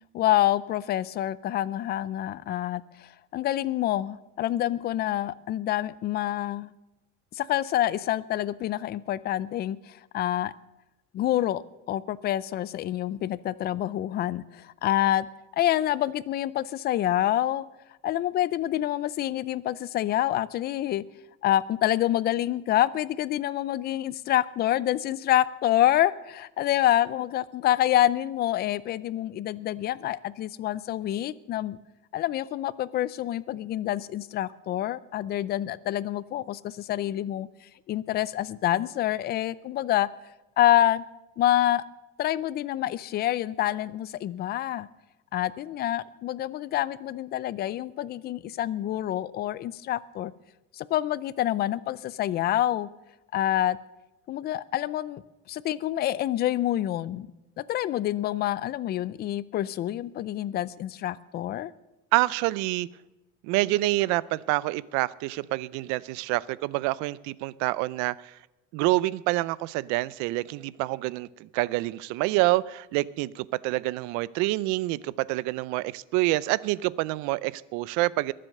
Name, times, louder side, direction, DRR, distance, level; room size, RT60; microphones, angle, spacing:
voice 1, 0.1-6.7 7.3-10.5 11.1-11.6 11.9-15.3 15.6-17.6 18.0-21.0 21.4-31.8 32.1-37.5 37.9-40.1 40.6-41.0 41.4-41.8 42.2-44.9 45.3-50.3 50.7-52.9 53.3-53.8 54.3-55.2 55.5-57.3 57.6-61.7, left 13 dB, 35° left, 19 dB, 0.5 m, -27 dB
voice 2, 62.1-62.9 63.4-68.3 68.7-78.3, right 19 dB, 80° right, 21 dB, 0.6 m, -27 dB
22.0 x 7.7 x 6.5 m, 0.98 s
cardioid pair, 170°, 29 cm